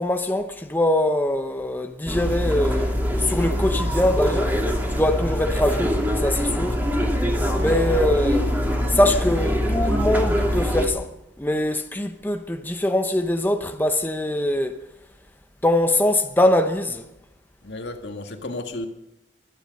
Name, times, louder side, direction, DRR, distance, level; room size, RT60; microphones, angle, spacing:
voice 1, 0.0-4.6 4.9-6.0 6.2-6.8 7.6-8.5 8.9-11.1 11.4-14.8 15.6-17.1, left 1 dB, 10° left, 0.9 m, -22 dB
sound 1, 2.1-10.9, equal, 10° right, 2.7 m, -23 dB
voice 2, 17.6-18.9, left 2 dB, 70° left, 2.0 m, -33 dB
24.0 x 10.5 x 5.4 m
head